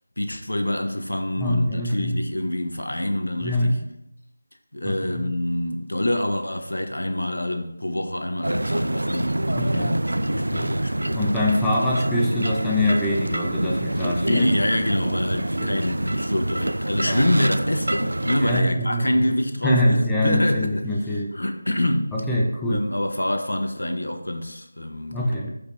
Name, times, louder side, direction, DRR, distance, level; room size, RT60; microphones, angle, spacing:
voice 1, 0.2-3.8 4.7-11.2 14.3-20.9 21.3-22.1 22.7-25.3, left 1 dB, 90° left, 1.1 m, -26 dB
voice 2, 1.4-2.2 3.4-3.8 4.8-5.2 9.5-10.0 10.3-10.7 11.1-14.5 15.0-15.2 15.6-15.8 17.0-17.3 18.4-19.3 19.6-21.3 22.1-22.8 25.1-25.5, left 1 dB, 5° left, 0.8 m, -24 dB
sound 1, 8.4-18.6, right 1 dB, 85° right, 0.3 m, -26 dB
13.5 x 5.2 x 2.8 m
figure-of-eight pair, 170°, 0 cm